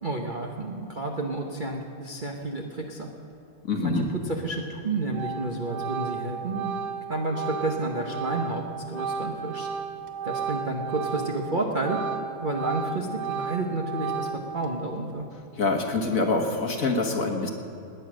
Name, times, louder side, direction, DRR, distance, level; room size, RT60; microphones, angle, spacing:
voice 1, 0.0-3.1 3.8-6.7 7.1-8.6 8.9-9.7 10.2-12.0 12.4-15.2, right 2 dB, 40° right, 1 dB, 0.7 m, -30 dB
voice 2, 3.7-4.1 15.6-17.5, left 3 dB, 45° left, 2 dB, 1.4 m, -25 dB
Organ, 4.6-4.8 5.1-11.5 11.8-14.7, right 6 dB, 60° right, 1.4 m, -33 dB
19.5 x 9.4 x 6.2 m, 2.8 s
omnidirectional pair, 2.3 m